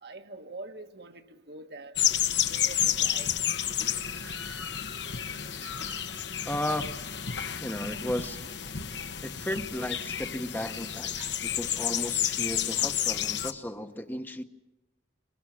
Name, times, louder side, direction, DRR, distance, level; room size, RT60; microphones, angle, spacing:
voice 1, 0.0-2.0 2.5-3.3 3.8-4.8 5.1-5.3 5.6-6.1 11.2-11.4, right 3 dB, 60° right, 1.4 m, -46 dB
sound 1, 2.0-13.5, left 9 dB, 80° left, 1.2 m, -31 dB
voice 2, 6.4-7.0 7.6-8.4 9.2-11.1 11.4-14.4, left 1 dB, 10° left, 0.9 m, -34 dB
23.0 x 22.5 x 7.5 m
head